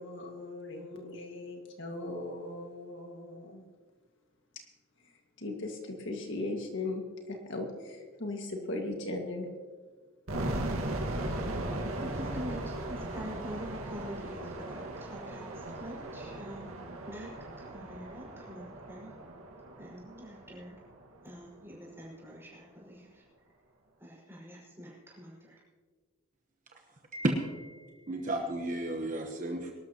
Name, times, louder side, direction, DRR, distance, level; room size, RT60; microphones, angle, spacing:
voice 1, 0.0-3.6 5.4-9.5, left 2 dB, 55° left, 2 dB, 1.9 m, -38 dB
sound 1, 10.3-21.2, right 1 dB, 75° right, 1.8 m, -38 dB
voice 2, 12.0-17.3 17.6-19.2 19.8-20.8 21.2-23.2 24.0-25.6, equal, 10° right, -5 dB, 5.5 m, -45 dB
voice 3, 27.1-29.7, right 1 dB, 35° right, 2 dB, 1.2 m, -33 dB
23.5 x 13.0 x 3.0 m, 1.5 s
head